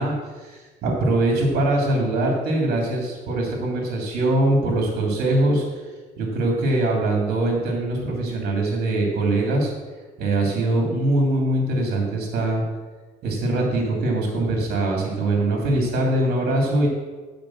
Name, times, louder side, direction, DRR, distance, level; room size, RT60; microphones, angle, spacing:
voice 1, 0.0-5.9 6.2-9.7 10.2-12.6 13.2-16.9, right 2 dB, 65° right, 0 dB, 2.9 m, -22 dB
8.8 x 5.3 x 7.3 m, 1.3 s
cardioid pair, 110°, 17 cm